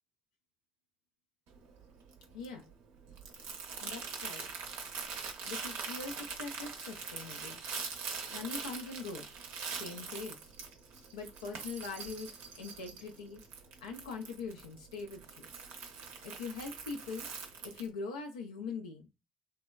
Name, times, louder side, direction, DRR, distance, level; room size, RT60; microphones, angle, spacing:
Crumpling crinkling, 1.5-17.9, right 5 dB, 70° right, 0.5 m, -43 dB
voice 1, 2.3-2.6 3.8-4.5 5.4-7.6 8.3-9.3 9.8-10.5 11.1-12.3 12.6-13.4 13.8-15.5 16.2-17.3 17.6-19.1, left 4 dB, 85° left, 2 dB, 0.3 m, -42 dB
3.2 x 2.1 x 2.3 m, 0.24 s
hypercardioid pair, 45°, 3 cm